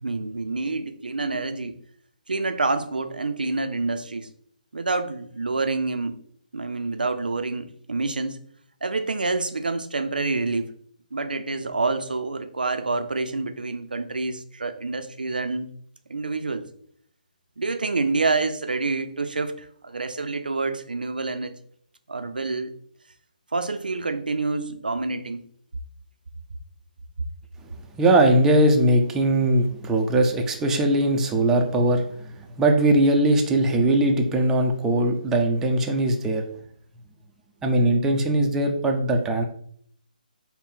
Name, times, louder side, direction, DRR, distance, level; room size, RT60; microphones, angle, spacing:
voice 1, 0.0-1.8 2.3-4.3 4.7-6.2 6.5-8.4 8.8-10.7 11.1-15.7 16.1-16.6 17.6-21.5 22.1-22.7 23.5-25.4, right 3 dB, 80° right, 9 dB, 0.4 m, -27 dB
voice 2, 28.0-32.3 32.6-36.4 37.6-39.4, right 1 dB, 10° right, 3 dB, 0.4 m, -20 dB
3.8 x 2.1 x 3.9 m, 0.63 s
figure-of-eight pair, 140°, 5 cm